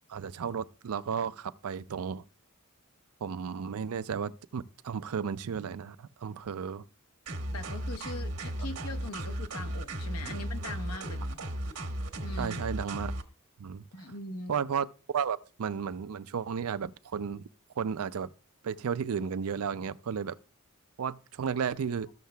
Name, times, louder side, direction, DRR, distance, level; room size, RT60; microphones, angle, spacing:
voice 1, 0.1-2.2 3.2-6.8 12.4-13.1 13.6-13.9 14.5-14.9 15.1-17.4 17.8-18.3 18.6-20.4 21.0-22.1, right 7 dB, 70° right, 0.4 m, -33 dB
sound 1, 7.3-13.2, right 1 dB, 90° right, 1.3 m, -35 dB
voice 2, 7.5-11.4 12.2-12.6 13.9-14.6, left 2 dB, 85° left, 1.0 m, -41 dB
14.5 x 6.5 x 2.3 m
head